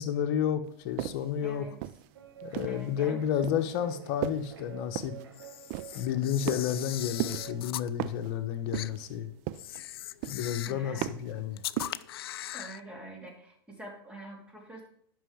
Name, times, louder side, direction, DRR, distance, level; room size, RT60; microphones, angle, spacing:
voice 1, 0.0-1.7 2.4-5.1 5.9-9.3 10.3-11.6, left 9 dB, 50° left, 7 dB, 1.1 m, -31 dB
sound 1, 1.0-1.3 1.8-2.9 3.4-3.7 4.2-4.5 5.0-5.2 5.7-6.0 6.5-6.9 7.2-7.6 8.0-8.3 8.7-9.1 9.5-9.9 10.2-10.6 11.0-11.3 11.8-12.1, right 14 dB, 45° right, 0.5 m, -36 dB
voice 2, 1.4-1.7 2.7-3.2 10.7-11.1 12.5-14.8, right 1 dB, 10° right, 0 dB, 2.9 m, -45 dB
Guitar, 2.1-7.6, right 8 dB, 75° right, 3.1 m, -49 dB
Camera, 5.3-7.9 8.7-8.9 9.5-10.8 11.6-12.8, left 13 dB, 70° left, 0.4 m, -39 dB
11.0 x 5.7 x 5.1 m, 0.66 s
hypercardioid pair, 120°, 13 cm